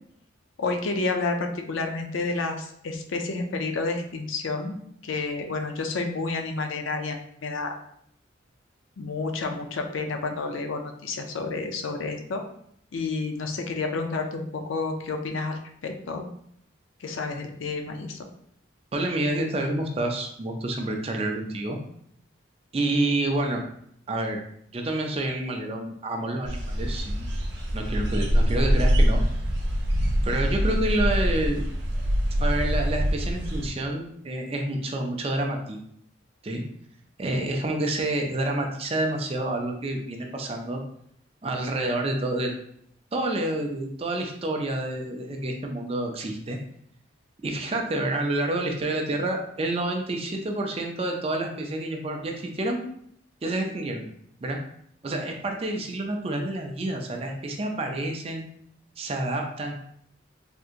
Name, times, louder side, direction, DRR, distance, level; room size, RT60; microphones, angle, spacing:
voice 1, 0.6-7.7 9.0-12.4 12.9-16.3 17.0-18.2, left 3 dB, 75° left, 4 dB, 0.5 m, -30 dB
voice 2, 18.9-21.8 22.7-23.6 24.1-24.4 24.7-27.2 27.7-29.2 30.2-31.7 32.4-35.8 36.4-36.6 37.2-40.8 41.4-42.5 43.1-46.6 47.4-52.8 53.4-54.0 54.4-54.6 55.0-58.4 59.0-59.9, right 1 dB, 30° right, 3 dB, 0.4 m, -28 dB
sound 1, 26.4-33.7, equal, 60° right, 0.7 m, -24 dB
3.5 x 2.8 x 2.4 m, 0.69 s
head